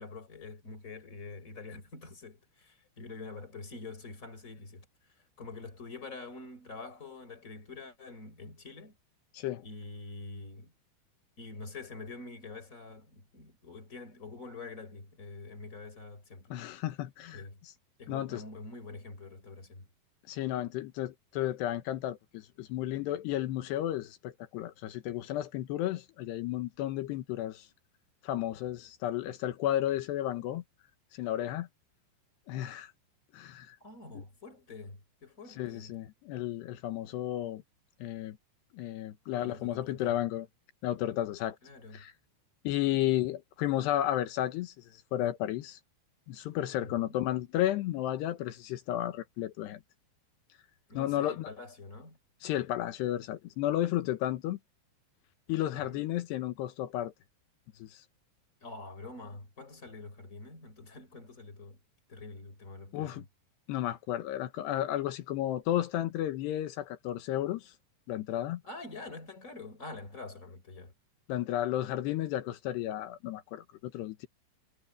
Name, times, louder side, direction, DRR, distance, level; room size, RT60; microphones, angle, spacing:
voice 1, 0.0-4.9 5.4-8.9 9.6-10.7 11.4-16.5 17.3-17.6 18.0-19.9 33.8-36.0 39.4-40.2 41.6-42.0 42.9-43.0 47.0-47.2 50.9-52.2 55.9-56.0 58.6-61.8 62.1-63.2 68.6-70.9, left 3 dB, 20° left, 4.3 m, -46 dB
voice 2, 9.3-9.7 16.5-17.7 18.1-18.4 20.3-27.7 28.2-30.6 31.1-31.7 32.5-32.9 33.3-33.8 34.1-34.2 35.6-37.6 38.0-38.4 38.7-40.5 40.8-41.6 41.9-42.1 42.6-45.8 46.3-49.8 50.9-51.5 52.4-54.6 55.5-57.1 57.8-58.0 62.9-63.2 63.7-67.7 68.1-68.6 71.3-74.3, left 13 dB, 85° left, 3.3 m, -33 dB
omnidirectional pair, 4.8 m